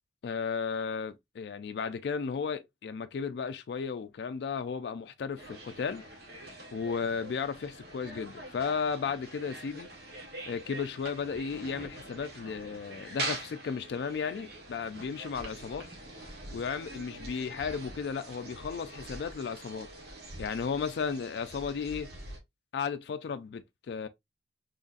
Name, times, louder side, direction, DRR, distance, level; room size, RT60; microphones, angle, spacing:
voice 1, 0.2-6.0 6.7-9.9 10.5-15.8 16.5-19.9 20.4-22.1 22.7-24.1, left 6 dB, 65° left, 0.3 m, -34 dB
sound 1, 5.4-22.4, right 2 dB, 60° right, 1.3 m, -44 dB
3.8 x 3.1 x 2.4 m
head